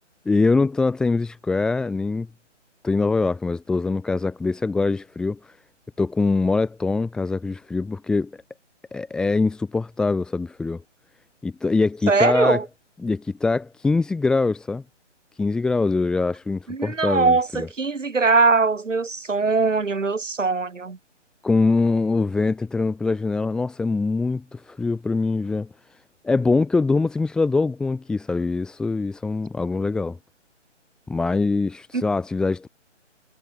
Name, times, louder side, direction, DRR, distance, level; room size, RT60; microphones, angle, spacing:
voice 1, 0.3-2.3 2.8-5.6 6.0-8.4 8.9-10.8 11.4-12.6 13.0-14.8 15.4-17.7 21.4-26.0 26.2-30.2 31.1-32.7, left 3 dB, ahead, 4.2 m, -23 dB
voice 2, 12.1-12.6 16.7-21.0 31.9-32.0, right 4 dB, 80° right, 7.2 m, -21 dB
hypercardioid pair, 175°, 37 cm